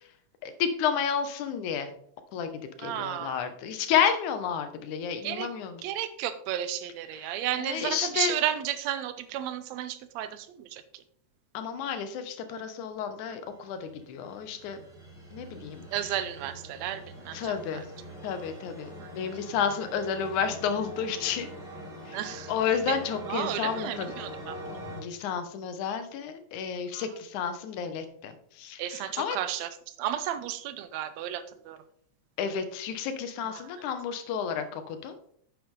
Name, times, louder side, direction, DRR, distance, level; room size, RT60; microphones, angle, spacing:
voice 1, 0.4-1.9 2.3-2.5 2.8-5.8 7.6-8.3 11.5-14.8 15.3-15.9 17.3-17.9 18.2-21.5 22.1-22.2 22.5-24.1 25.0-28.3 28.6-28.8 29.2-29.4 32.4-35.1, left 7 dB, 85° left, 9 dB, 2.3 m, -31 dB
voice 2, 2.8-3.5 5.2-5.5 5.8-11.0 15.9-17.8 19.0-19.1 22.1-22.5 22.8-23.0 23.3-24.6 26.9-27.2 28.8-29.7 30.0-31.8 33.5-33.8, right 11 dB, 75° right, 12 dB, 1.8 m, -33 dB
sound 1, 13.4-25.0, equal, ahead, 3.2 m, -44 dB
8.8 x 6.9 x 3.7 m, 0.63 s
omnidirectional pair, 3.4 m